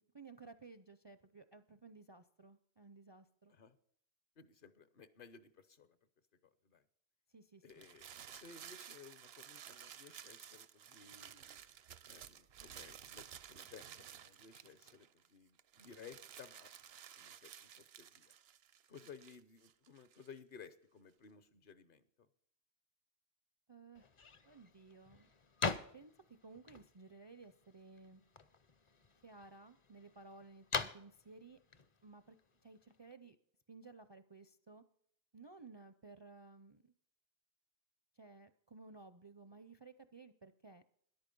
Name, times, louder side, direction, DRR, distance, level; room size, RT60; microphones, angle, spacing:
voice 1, 0.0-3.5 7.3-7.9 23.7-24.1 24.4-25.3 25.9-26.1 26.4-28.2 29.2-31.6 32.0-32.4 32.6-33.4 33.7-34.8 35.3-36.9 38.2-40.8, right 3 dB, 35° right, 11 dB, 0.4 m, -57 dB
voice 2, 4.4-6.0 6.6-6.8 7.6-11.6 12.1-16.7 17.2-18.3 18.9-22.3, left 6 dB, 60° left, 13 dB, 0.9 m, -57 dB
sound 1, 7.7-15.3 15.6-20.4, right 9 dB, 75° right, 0.9 m, -55 dB
sound 2, 23.9-33.1, left 4 dB, 35° left, 0.6 m, -45 dB
13.5 x 10.5 x 5.3 m, 0.65 s
omnidirectional pair, 1.1 m